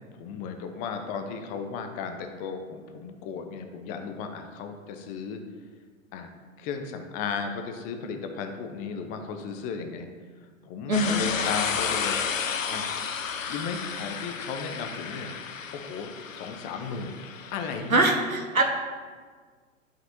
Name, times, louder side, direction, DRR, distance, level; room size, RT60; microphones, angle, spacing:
voice 1, 0.2-5.4 6.1-6.3 6.6-10.1 10.6-12.2 12.7-12.8 13.5-15.3 15.7-17.1 17.5-18.0, left 5 dB, 20° left, 6 dB, 0.6 m, -35 dB
sound 1, 10.9-17.9, left 6 dB, 75° left, 0.7 m, -32 dB
voice 2, 10.9-11.3 17.9-18.6, right 2 dB, 90° right, 1 dB, 1.0 m, -23 dB
11.5 x 5.9 x 2.7 m, 1.5 s
figure-of-eight pair, 105°, 40 cm